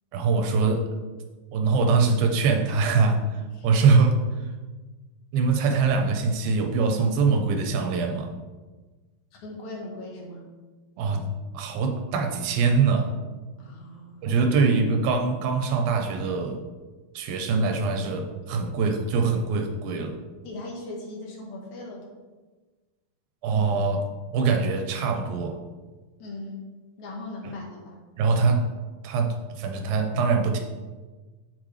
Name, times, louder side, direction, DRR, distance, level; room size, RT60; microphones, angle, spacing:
voice 1, 0.1-0.8 1.5-3.2 3.6-4.2 5.3-8.4 11.0-13.1 14.2-16.6 17.1-20.2 23.4-25.6 28.2-28.7 29.0-30.6, right 4 dB, 80° right, 4 dB, 2.7 m, -23 dB
voice 2, 9.3-10.5 13.6-14.3 20.4-22.1 26.2-26.6 27.0-28.0, left 2 dB, 60° left, -1 dB, 2.6 m, -39 dB
7.9 x 7.3 x 3.3 m, 1.3 s
omnidirectional pair, 4.1 m